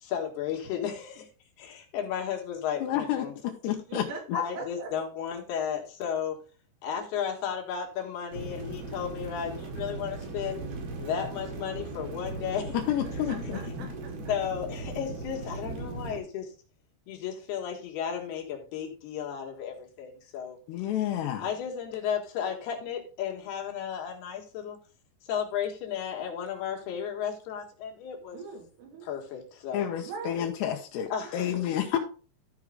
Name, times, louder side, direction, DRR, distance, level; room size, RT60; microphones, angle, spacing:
voice 1, 0.0-1.3 1.6-3.3 4.3-6.4 6.8-10.6 11.0-12.8 14.3-16.5 17.1-20.6 21.4-24.8 25.3-28.4 29.0-29.9 31.1-31.5 31.9-32.0, left 8 dB, 75° left, 2 dB, 3.6 m, -34 dB
voice 2, 2.8-4.1 12.7-13.6 20.7-21.5 29.7-32.0, left 11 dB, 90° left, 2 dB, 3.1 m, -30 dB
voice 3, 3.9-4.9 13.0-14.3 21.1-21.7 28.3-29.1 30.0-30.5 31.2-31.7, right 4 dB, 85° right, 1 dB, 4.4 m, -42 dB
sound 1, 8.3-16.2, right 3 dB, 65° right, 3.7 m, -38 dB
14.0 x 4.9 x 3.7 m, 0.36 s
omnidirectional pair, 4.8 m